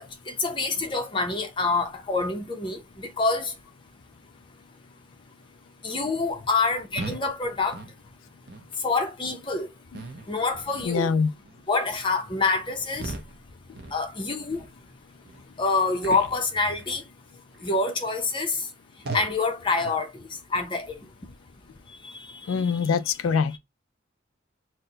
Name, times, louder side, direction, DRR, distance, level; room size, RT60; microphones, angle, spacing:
voice 1, 0.0-3.5 5.8-7.8 8.8-9.7 10.3-11.1 11.7-13.1 13.9-14.6 15.6-17.0 17.6-18.6 19.1-20.1 20.5-20.9 22.0-22.7, left 3 dB, 25° left, 0.6 m, -26 dB
sound 1, 7.0-7.3 7.7-7.9 8.5-8.7 9.2-9.4 9.9-10.3 10.7-11.0 11.4-11.7 12.2-12.4 12.9-13.4 13.7-14.1 14.5-14.7 15.2-15.4 16.0-16.4 16.8-17.1 17.5-17.8 18.3-18.4 19.0-19.4 19.8-20.0, right 3 dB, 50° right, 0.6 m, -38 dB
voice 2, 10.8-11.3 22.5-23.6, left 5 dB, 85° left, 0.3 m, -24 dB
4.3 x 2.1 x 3.8 m
head